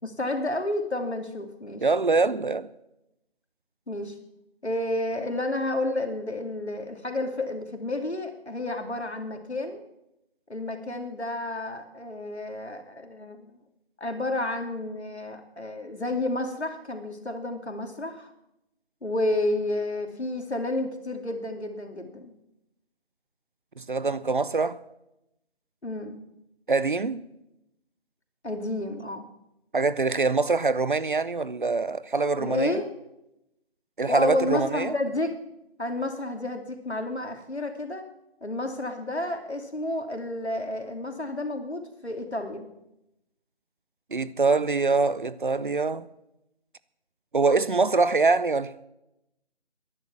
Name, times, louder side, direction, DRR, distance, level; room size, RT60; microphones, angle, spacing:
voice 1, 0.0-1.8 3.9-4.2 4.6-9.8 10.5-13.6 14.0-18.3 19.0-22.3 25.8-26.2 28.4-29.2 32.4-32.9 34.1-35.4 35.8-38.1 38.4-42.7, left 2 dB, 85° left, 2.8 m, -30 dB
voice 2, 1.8-2.7 23.8-24.8 26.7-27.2 29.7-32.8 34.0-34.9 44.1-46.1 47.3-48.7, right 3 dB, 50° right, 0.7 m, -24 dB
15.0 x 11.0 x 7.3 m
figure-of-eight pair, 160°, 32 cm